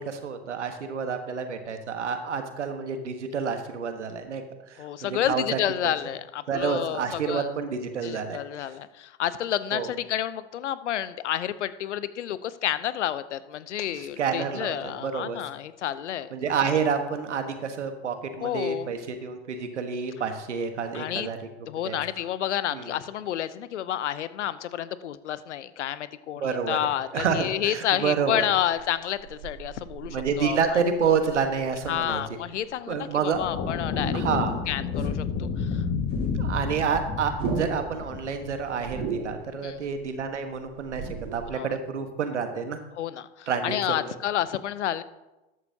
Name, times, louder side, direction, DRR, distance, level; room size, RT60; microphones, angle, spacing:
voice 1, 0.0-4.4 4.7-5.9 6.5-8.7 9.7-9.9 13.9-15.4 16.3-21.5 21.8-22.0 22.7-22.9 26.4-28.5 30.1-32.2 32.9-33.4 34.1-34.6 36.4-41.0 41.3-42.8 43.5-44.1, right 6 dB, 85° right, 7 dB, 1.4 m, -29 dB
voice 2, 4.8-7.6 8.0-16.3 18.4-18.9 20.9-21.3 21.7-30.8 31.9-34.3 34.7-35.8 39.6-39.8 41.5-41.7 43.0-45.0, left 11 dB, 85° left, 15 dB, 0.7 m, -30 dB
sound 1, 28.7-33.5 33.8-35.1 35.4-35.5 35.8-41.5, right 5 dB, 65° right, 3.2 m, -37 dB
sound 2, 33.3-39.0, left 5 dB, 40° left, 1.7 m, -30 dB
13.5 x 11.0 x 2.8 m, 1.0 s
hypercardioid pair, 85°, 34 cm